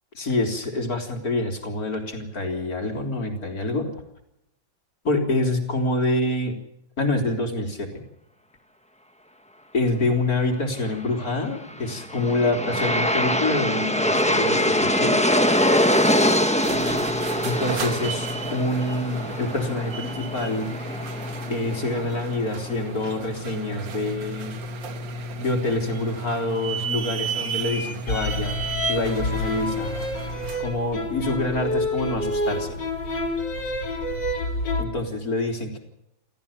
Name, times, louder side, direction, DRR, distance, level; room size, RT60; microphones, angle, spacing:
voice 1, 0.2-3.9 5.0-6.6 7.0-8.0 9.7-15.2 17.4-20.7 21.5-24.6 25.3-28.6 28.9-30.0 30.6-32.8 34.8-35.8, left 2 dB, 50° left, 3 dB, 4.1 m, -26 dB
Aircraft, 11.7-22.7, equal, 5° left, 1.2 m, -24 dB
sound 1, 16.5-30.7, right 3 dB, 80° right, 2.3 m, -33 dB
sound 2, 28.1-34.8, left 2 dB, 70° left, 4.1 m, -28 dB
29.0 x 14.0 x 7.1 m, 0.88 s
omnidirectional pair, 2.0 m